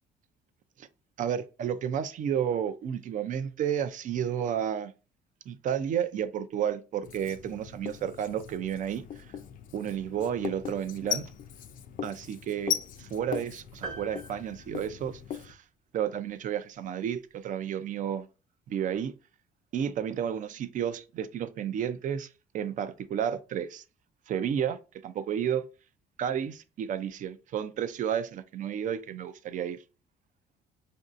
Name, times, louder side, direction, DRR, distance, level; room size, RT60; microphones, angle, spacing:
voice 1, 1.2-4.9 5.5-9.3 9.7-11.3 12.0-15.6 15.9-18.3 18.7-19.1 19.7-22.3 22.5-23.8 24.3-25.6 26.2-29.8, right 9 dB, 50° right, 0.4 m, -32 dB
Writing, 7.0-15.5, left 8 dB, 55° left, 0.5 m, -38 dB
sound 1, 13.8-15.6, right 4 dB, 30° right, 0.9 m, -43 dB
5.2 x 2.6 x 2.5 m
cardioid pair, 110°, 17 cm